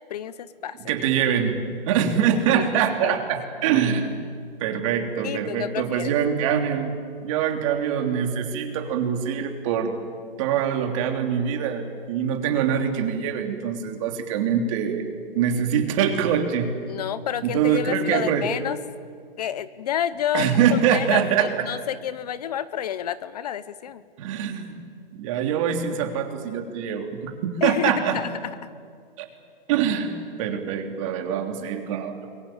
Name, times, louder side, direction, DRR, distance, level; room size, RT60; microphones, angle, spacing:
voice 1, 0.1-0.8 2.5-2.6 3.0-3.2 5.2-6.1 16.9-18.8 19.4-24.0 27.6-28.3, left 10 dB, 40° left, 16 dB, 0.8 m, -29 dB
voice 2, 0.9-4.3 4.6-6.9 7.2-9.9 10.4-15.1 15.3-16.7 17.4-18.5 20.3-21.7 24.2-24.8 25.1-27.3 27.6-28.2 29.2-29.3 29.7-32.3, right 8 dB, 35° right, 4 dB, 3.3 m, -24 dB
29.0 x 22.5 x 8.8 m, 2.1 s
hypercardioid pair, 160°, 29 cm